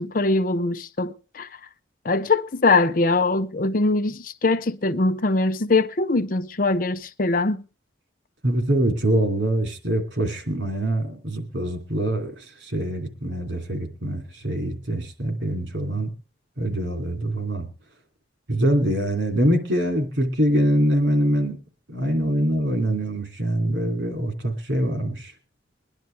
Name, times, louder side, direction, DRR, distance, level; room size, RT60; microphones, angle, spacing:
voice 1, 0.0-1.5 2.0-7.6, left 3 dB, 50° left, 0.7 m, -22 dB
voice 2, 8.4-16.1 16.6-17.7 18.5-21.6 21.9-25.3, right 1 dB, 85° right, 3.0 m, -24 dB
22.0 x 10.5 x 3.4 m
head